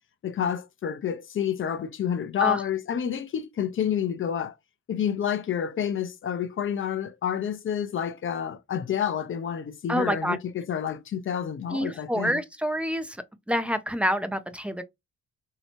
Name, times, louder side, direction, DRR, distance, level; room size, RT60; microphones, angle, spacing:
voice 1, 0.2-4.5 4.9-12.4, left 9 dB, 45° left, 0.6 m, -29 dB
voice 2, 9.9-10.4 11.7-13.2 13.5-14.8, equal, 5° right, 0.5 m, -27 dB
3.1 x 2.8 x 2.9 m
cardioid pair, 90°, 30 cm